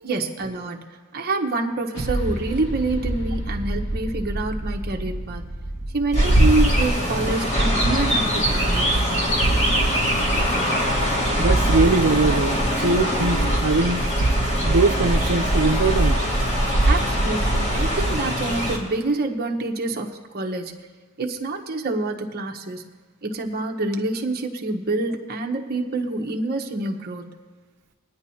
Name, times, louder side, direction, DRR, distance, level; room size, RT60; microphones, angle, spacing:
voice 1, 0.0-5.4 5.9-9.3 16.9-20.8 21.2-22.8 23.2-27.3, right 2 dB, 45° right, 2 dB, 1.1 m, -27 dB
sound 1, 1.9-9.5, right 1 dB, 55° left, 2.7 m, -31 dB
Chirp tweet, 6.1-18.8, right 1 dB, 30° left, 2.1 m, -21 dB
voice 2, 11.4-14.1 14.6-16.2, right 3 dB, 70° right, 1 dB, 0.6 m, -22 dB
23.0 x 9.4 x 2.8 m, 1.5 s
head